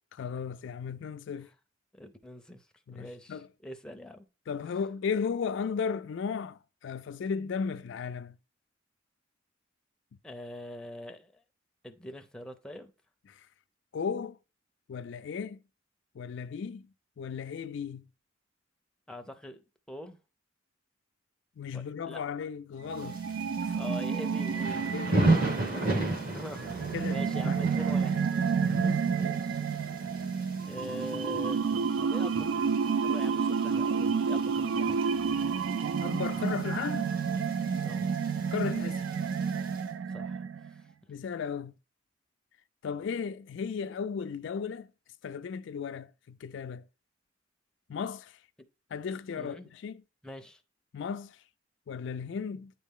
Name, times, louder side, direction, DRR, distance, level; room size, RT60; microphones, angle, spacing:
voice 1, 0.1-1.5 2.9-3.5 4.5-8.4 13.3-13.5 13.9-14.4 14.9-15.6 16.1-16.9 17.2-18.1 21.6-23.2 23.6-23.8 24.9-25.6 26.9-27.6 28.6-28.9 36.0-37.2 38.5-39.1 41.1-41.7 42.8-44.9 45.2-46.9 47.9-48.4 48.9-50.0 50.9-51.4 51.9-52.7, left 6 dB, 65° left, 0.3 m, -35 dB
voice 2, 1.9-4.3 10.2-11.4 11.8-12.9 19.1-20.2 21.7-22.2 23.7-25.4 25.7-28.2 29.2-29.6 30.6-31.7 32.0-32.5 33.0-35.0 36.3-36.4 37.8-38.1 40.1-40.9 49.4-49.7 50.2-50.6, left 1 dB, 5° left, 0.6 m, -44 dB
sound 1, 22.9-40.8, right 6 dB, 70° right, 0.4 m, -30 dB
Thunder / Rain, 23.0-39.8, right 2 dB, 50° right, 1.9 m, -35 dB
9.0 x 4.0 x 3.7 m
head